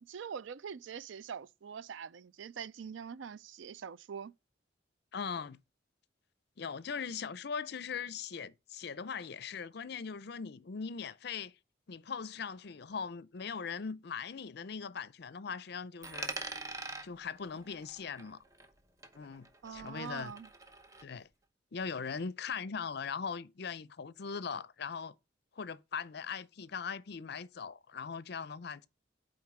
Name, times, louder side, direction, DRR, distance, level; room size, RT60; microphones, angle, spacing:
voice 1, 0.1-4.3 19.6-20.5, right 7 dB, 80° right, 0.4 m, -44 dB
voice 2, 5.1-5.6 6.6-11.5 11.9-16.3 17.0-18.4 19.1-20.3 21.0-21.3 21.7-25.1 25.6-28.9, left 6 dB, 60° left, 0.5 m, -40 dB
Coin (dropping), 16.0-18.8 19.0-21.0, right 2 dB, 15° right, 0.9 m, -44 dB
8.8 x 3.8 x 4.9 m
head